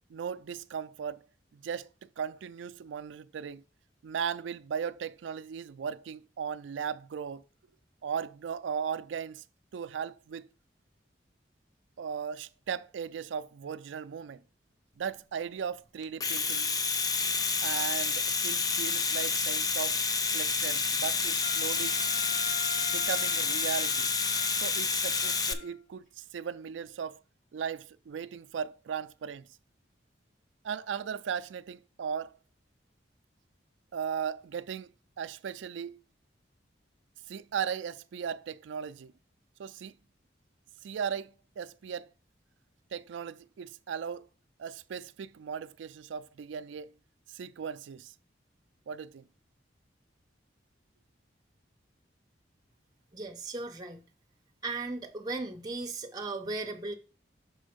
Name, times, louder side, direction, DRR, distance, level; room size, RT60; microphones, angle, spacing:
voice 1, 0.1-1.2 1.5-1.9 2.2-3.6 4.0-7.4 8.0-9.4 9.7-10.5 12.0-14.4 15.0-16.7 17.6-20.0 20.3-22.0 22.9-24.1 24.6-27.2 27.5-29.5 30.6-32.3 33.9-34.9 35.2-36.0 37.3-39.1 39.6-39.9 40.8-42.1 42.9-44.2 44.6-46.9 47.3-48.1 48.9-49.2, right 7 dB, 85° right, 0.4 m, -37 dB
Domestic sounds home sounds, 16.0-25.5, left 5 dB, 20° left, 0.4 m, -29 dB
Wind instrument woodwind instrument, 21.4-25.7, left 6 dB, 45° left, 1.6 m, -41 dB
voice 2, 53.1-54.0 54.6-57.0, right 3 dB, 20° right, 0.7 m, -36 dB
6.2 x 4.3 x 5.1 m
head